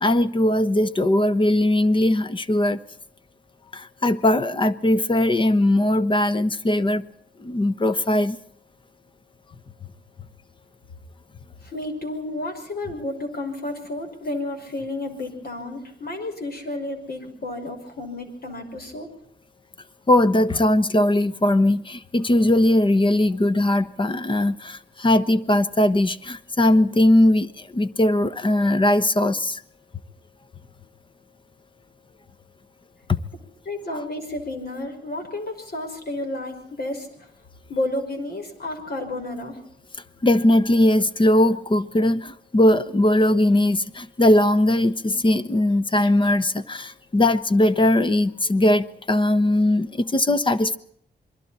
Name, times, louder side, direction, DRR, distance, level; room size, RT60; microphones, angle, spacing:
voice 1, 0.0-2.8 3.7-7.0 7.4-8.4 20.1-29.6 33.1-33.2 40.2-50.8, left 1 dB, 30° left, 13 dB, 1.1 m, -20 dB
voice 2, 11.6-19.1 33.7-37.1 37.7-39.6, left 2 dB, 60° left, 6 dB, 5.7 m, -31 dB
27.5 x 23.0 x 4.3 m, 0.68 s
wide cardioid pair, 120°, 18 cm